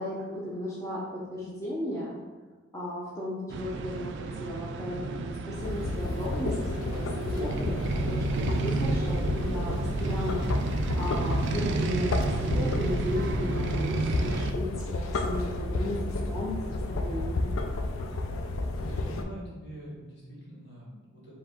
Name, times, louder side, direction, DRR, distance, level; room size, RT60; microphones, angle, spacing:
voice 1, 0.0-2.1 2.7-12.1 12.4-16.0 16.3-17.5, equal, 15° left, -6 dB, 0.6 m, -35 dB
sound 1, 3.5-14.5, right 3 dB, 60° right, 0.3 m, -32 dB
sound 2, 5.5-19.2, left 2 dB, 85° left, 0.4 m, -31 dB
voice 2, 18.7-21.4, equal, 55° left, -6 dB, 1.5 m, -44 dB
4.6 x 2.8 x 3.6 m, 1.3 s
head